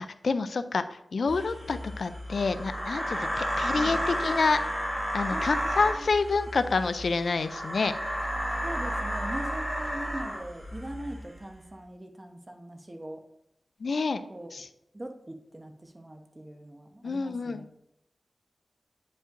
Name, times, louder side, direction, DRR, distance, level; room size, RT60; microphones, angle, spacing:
voice 1, 0.0-4.6 5.1-7.9 13.8-14.2 14.5-14.7 17.0-17.6, left 4 dB, 80° left, 11 dB, 0.3 m, -28 dB
sound 1, 1.3-11.5, equal, 5° right, 1.9 m, -32 dB
voice 2, 5.3-6.1 8.6-13.2 14.3-14.5 14.9-17.7, right 1 dB, 25° right, 4 dB, 0.9 m, -41 dB
8.7 x 5.3 x 2.6 m, 0.80 s
wide cardioid pair, 60°, 0 cm